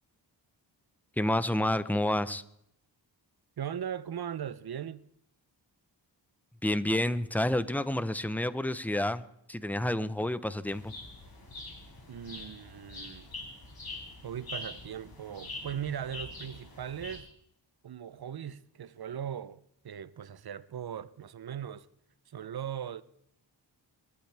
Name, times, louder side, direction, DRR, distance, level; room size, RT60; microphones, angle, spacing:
voice 1, 1.2-2.4 6.6-10.9, left 1 dB, 5° left, 0.8 m, -29 dB
voice 2, 3.6-5.1 12.1-13.3 14.2-17.3 17.8-21.9 22.3-23.0, right 9 dB, 55° right, 0.7 m, -39 dB
sound 1, 10.6-17.2, left 2 dB, 50° left, 4.6 m, -44 dB
27.0 x 12.0 x 3.4 m
cardioid pair, 70°, 45 cm